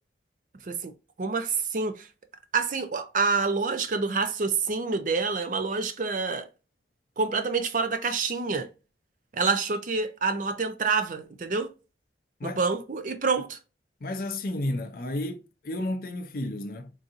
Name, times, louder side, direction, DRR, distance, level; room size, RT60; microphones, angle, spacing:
voice 1, 1.2-2.1 2.5-6.5 7.2-8.7 9.3-11.7 12.4-13.6, right 4 dB, 45° right, 0.5 m, -27 dB
voice 2, 14.0-16.9, left 1 dB, 50° left, 0.5 m, -32 dB
3.9 x 2.7 x 2.4 m
head